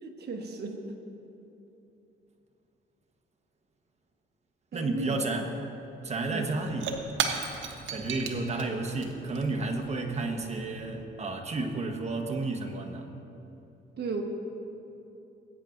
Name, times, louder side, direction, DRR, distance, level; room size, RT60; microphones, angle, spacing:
voice 1, 0.0-0.9 4.7-5.4 6.3-6.5 14.0-14.2, right 3 dB, 55° right, 2 dB, 1.2 m, -34 dB
voice 2, 4.7-5.5 6.0-7.1 7.9-13.1, right 3 dB, 35° right, 3 dB, 1.2 m, -32 dB
Shatter / Crushing, 5.8-5.9 6.1-11.0, right 6 dB, 70° right, 1.0 m, -36 dB
19.5 x 9.1 x 2.6 m, 2.8 s
cardioid pair, 90°, 20 cm